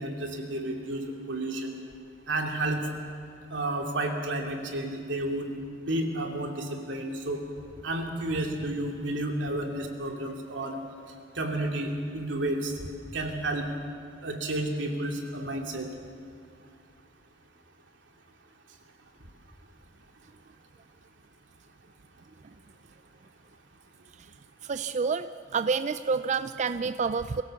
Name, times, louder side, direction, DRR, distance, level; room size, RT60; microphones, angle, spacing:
voice 1, 0.0-1.7 2.3-2.9 3.5-5.5 5.9-7.4 7.8-10.8 11.4-12.7 13.1-13.6 14.2-15.9, right 1 dB, 90° right, 2 dB, 2.6 m, -31 dB
voice 2, 24.6-27.4, right 5 dB, 40° right, 12 dB, 0.4 m, -28 dB
23.0 x 16.0 x 7.0 m, 2.5 s
head